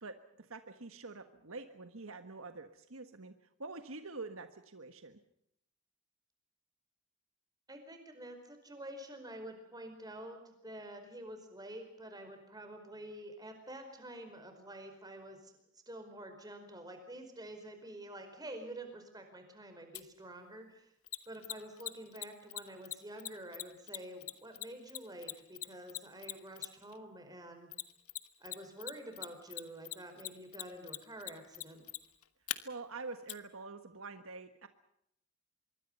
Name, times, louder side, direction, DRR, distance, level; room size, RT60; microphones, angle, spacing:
voice 1, 0.0-3.3 3.6-5.2 32.6-34.7, right 3 dB, 65° right, 8 dB, 1.5 m, -46 dB
voice 2, 7.7-15.6 15.9-20.9 21.3-27.7 28.4-31.8, right 1 dB, 15° right, 6 dB, 4.9 m, -48 dB
Mechanisms, 19.9-20.0 21.1-26.9 27.7-28.6 28.8-32.6 33.3-33.4, left 15 dB, 75° left, 1.4 m, -40 dB
25.5 x 23.5 x 5.5 m, 0.73 s
head